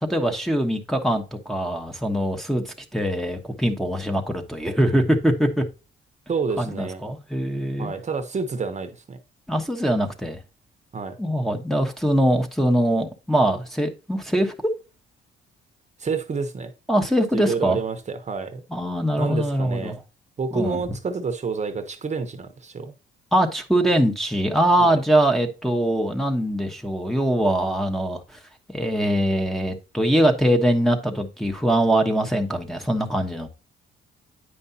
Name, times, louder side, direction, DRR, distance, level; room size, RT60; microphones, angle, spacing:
voice 1, 0.0-5.6 6.6-7.9 9.5-10.4 11.2-14.5 16.9-17.8 18.7-20.0 20.5-20.8 23.3-28.4 28.7-33.5, right 1 dB, ahead, 1.1 m, -22 dB
voice 2, 6.3-7.0 7.8-9.2 10.9-11.1 16.0-16.7 17.3-18.6 19.2-20.0 20.4-22.9 24.8-25.0, right 5 dB, 35° right, 1.0 m, -28 dB
9.3 x 5.3 x 2.8 m
cardioid pair, 90°, 20 cm